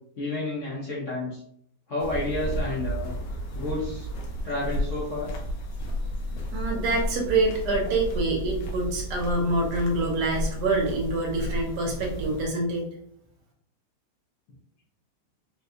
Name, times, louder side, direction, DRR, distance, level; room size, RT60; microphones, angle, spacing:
voice 1, 0.2-1.4 1.9-3.1 3.5-4.1 4.4-5.3, left 2 dB, 65° left, -5 dB, 0.8 m, -30 dB
sound 1, 2.0-12.5, right 1 dB, 90° left, 1.6 m, -32 dB
voice 2, 6.5-12.8, right 2 dB, 65° right, 1 dB, 1.3 m, -26 dB
4.1 x 2.3 x 2.6 m, 0.69 s
omnidirectional pair, 2.1 m